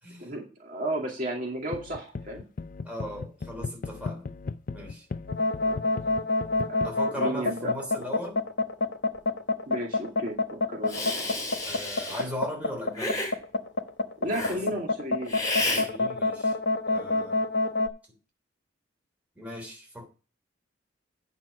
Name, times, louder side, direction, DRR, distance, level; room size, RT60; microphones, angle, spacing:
voice 1, 0.2-2.4 5.6-5.9 6.7-6.8 7.1-7.7 9.7-10.4 10.7-11.1 14.2-15.4 17.0-17.1, right 1 dB, 45° right, 2.2 m, -33 dB
sound 1, 1.7-6.9, left 4 dB, 45° left, 0.4 m, -36 dB
voice 2, 2.8-4.3 4.7-5.1 6.8-8.5 11.6-13.3 14.3-14.6 15.7-16.6 16.9-17.5 19.3-20.0, equal, 10° right, 3.1 m, -38 dB
sound 2, 5.3-17.9, left 2 dB, 70° left, 1.0 m, -26 dB
Hiss, 10.9-12.3 13.0-13.3 14.3-14.6 15.3-15.9, left 2 dB, 20° left, 3.2 m, -31 dB
8.9 x 5.9 x 6.3 m
head